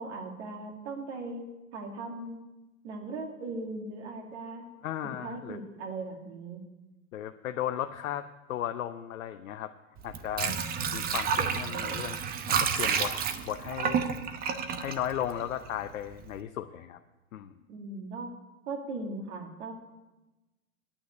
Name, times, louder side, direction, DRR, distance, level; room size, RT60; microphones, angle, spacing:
voice 1, 0.0-1.4 1.7-2.4 2.8-4.7 5.2-6.6 17.7-18.3 18.7-19.8, right 3 dB, 55° right, 2 dB, 2.4 m, -38 dB
voice 2, 4.8-5.6 7.1-9.7 10.0-10.6 10.9-12.2 12.5-13.2 13.5-14.0 14.8-17.0 17.3-17.5, left 11 dB, 70° left, 7 dB, 0.8 m, -35 dB
Water / Sink (filling or washing), 10.0-15.9 16.2-16.3, right 7 dB, 20° right, 0.7 m, -30 dB
9.4 x 8.8 x 8.4 m, 1.1 s
hypercardioid pair, 110°, 42 cm